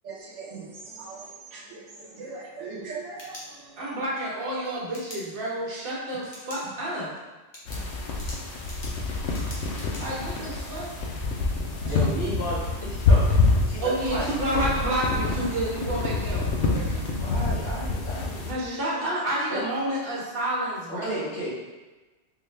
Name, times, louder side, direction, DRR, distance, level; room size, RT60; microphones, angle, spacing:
voice 1, 0.2-3.8 7.7-7.9, right 4 dB, 80° right, -2 dB, 1.0 m, -40 dB
sound 1, 2.8-4.0 4.9-5.2 6.2-6.6 7.0-7.1 7.5-10.0, left 1 dB, 25° left, 0.7 m, -43 dB
voice 2, 3.8-7.1 10.0-10.9 13.8-17.1 18.5-21.3, right 1 dB, 50° right, -6 dB, 1.1 m, -30 dB
sound 2, 7.7-18.5, left 3 dB, 80° left, 0.9 m, -26 dB
voice 3, 11.9-14.7 17.1-19.0 19.5-19.6 20.9-21.5, equal, 50° left, -9 dB, 1.0 m, -33 dB
3.8 x 2.2 x 3.2 m, 1.2 s
omnidirectional pair, 1.2 m